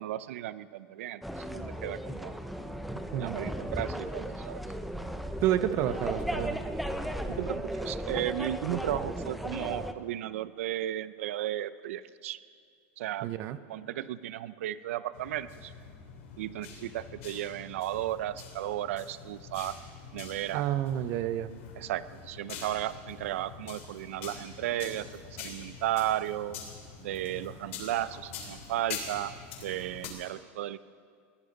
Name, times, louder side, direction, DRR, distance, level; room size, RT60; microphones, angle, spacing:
voice 1, 0.0-2.3 3.2-4.6 7.3-12.4 13.0-13.3 13.7-15.7 16.4-19.8 20.1-20.6 21.8-26.6 27.0-29.3 29.6-30.8, right 13 dB, 85° right, 16 dB, 0.6 m, -34 dB
sound 1, 1.2-9.9, equal, ahead, 0.5 m, -36 dB
voice 2, 5.4-6.6 13.2-13.6 20.5-21.5, right 12 dB, 40° right, 13 dB, 0.6 m, -29 dB
sound 2, 15.1-30.1, left 6 dB, 80° left, 3.2 m, -45 dB
20.5 x 16.0 x 4.0 m, 2.1 s
supercardioid pair, 165°, 7 cm